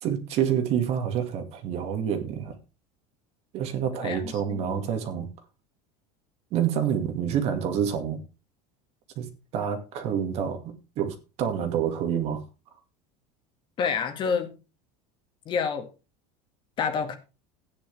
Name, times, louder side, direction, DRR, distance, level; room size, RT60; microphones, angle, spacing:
voice 1, 0.0-2.6 3.5-5.3 6.5-8.2 9.2-9.3 9.5-12.4, right 8 dB, 45° right, 2.2 m, -28 dB
voice 2, 4.0-4.6 13.8-14.6 15.5-15.9 16.8-17.2, left 6 dB, 30° left, 1.9 m, -28 dB
14.5 x 9.7 x 3.5 m
cardioid pair, 160°, 16 cm